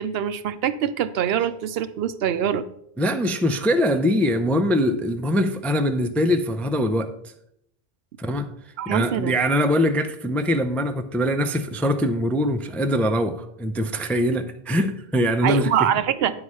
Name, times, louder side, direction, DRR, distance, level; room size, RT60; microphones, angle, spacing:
voice 1, 0.0-2.7 8.8-9.3 15.4-16.3, right 9 dB, 75° right, 13 dB, 0.8 m, -24 dB
voice 2, 3.0-7.1 8.2-8.5 8.9-15.9, equal, ahead, 7 dB, 0.3 m, -22 dB
9.7 x 4.9 x 5.5 m, 0.75 s
omnidirectional pair, 1.0 m